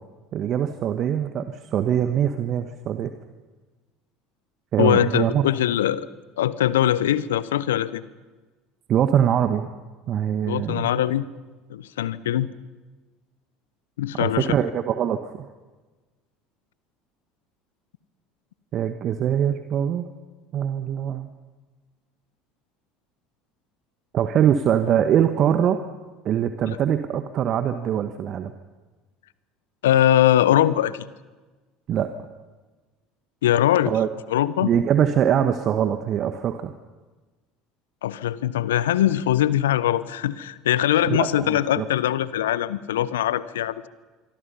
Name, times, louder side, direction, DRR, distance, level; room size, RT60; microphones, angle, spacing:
voice 1, 0.3-3.1 4.7-5.4 8.9-9.7 10.1-10.9 14.2-15.3 18.7-20.1 20.5-21.3 24.1-25.8 26.2-28.5 31.9-32.1 33.9-34.1 34.6-36.7 41.1-41.8, right 9 dB, 45° right, 8 dB, 1.3 m, -23 dB
voice 2, 4.8-6.0 6.4-8.0 10.4-11.2 11.7-12.5 14.0-14.6 29.8-31.1 33.4-33.9 34.3-34.7 38.0-43.9, left 12 dB, 75° left, 17 dB, 0.9 m, -21 dB
26.0 x 24.0 x 5.7 m, 1.3 s
figure-of-eight pair, 65°, 0 cm